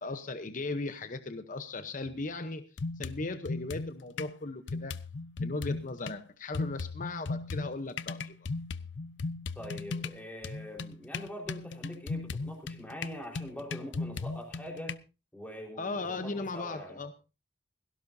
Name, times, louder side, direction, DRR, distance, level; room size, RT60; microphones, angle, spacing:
voice 1, 0.0-2.6 3.0-4.9 5.4-8.3 15.8-17.1, left 3 dB, 45° left, 9 dB, 0.9 m, -37 dB
sound 1, 2.1-2.2 2.8-4.3 4.7-6.2 6.5-15.0, left 3 dB, 85° left, 0.7 m, -37 dB
voice 2, 9.6-15.0 15.3-17.0, equal, 10° left, 1 dB, 4.4 m, -43 dB
17.5 x 16.5 x 2.7 m, 0.30 s
head